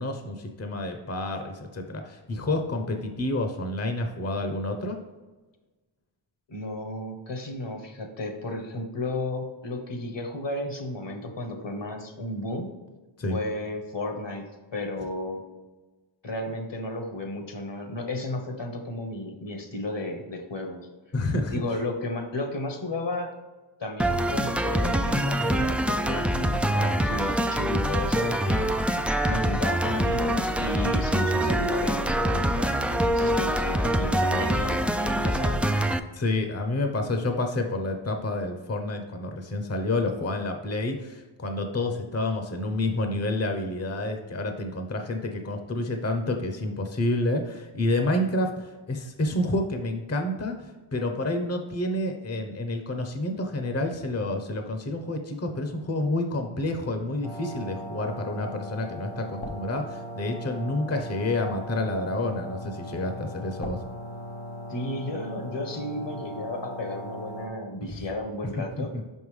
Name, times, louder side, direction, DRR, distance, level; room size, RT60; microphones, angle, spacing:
voice 1, 0.0-5.0 13.2-13.4 21.1-21.6 36.1-63.8 68.6-69.0, left 2 dB, 30° left, 5 dB, 0.8 m, -29 dB
voice 2, 6.5-12.7 13.3-15.4 16.2-20.9 21.5-23.3 23.8-28.7 29.2-35.7 64.7-68.9, left 1 dB, 65° left, 4 dB, 1.3 m, -33 dB
sound 1, 24.0-36.0, right 1 dB, 5° right, 0.3 m, -25 dB
sound 2, 57.2-67.5, equal, 85° left, 1.0 m, -38 dB
5.6 x 5.4 x 3.3 m, 1.2 s
cardioid pair, 50°, 48 cm